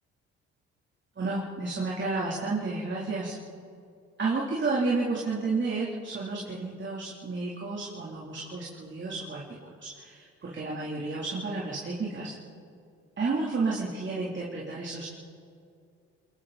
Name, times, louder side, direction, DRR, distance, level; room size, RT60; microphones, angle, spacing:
voice 1, 1.2-3.3 4.2-9.4 9.8-12.3 13.2-15.1, right 3 dB, 40° right, -5 dB, 4.0 m, -31 dB
29.0 x 21.0 x 4.5 m, 2.4 s
hypercardioid pair, 60°, 30 cm